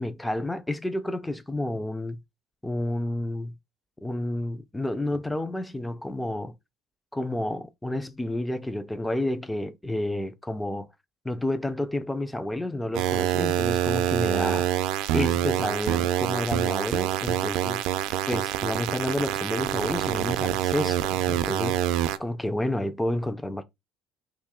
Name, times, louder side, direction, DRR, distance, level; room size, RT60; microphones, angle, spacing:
voice 1, 0.0-2.2 2.6-3.5 4.0-6.5 7.1-10.9 11.2-14.8 15.1-17.8 18.3-21.8 22.2-23.6, left 1 dB, 5° left, 0.3 m, -30 dB
sound 1, 12.9-22.2, right 12 dB, 75° right, 0.4 m, -26 dB
3.0 x 2.6 x 3.6 m
cardioid pair, 160°, 0 cm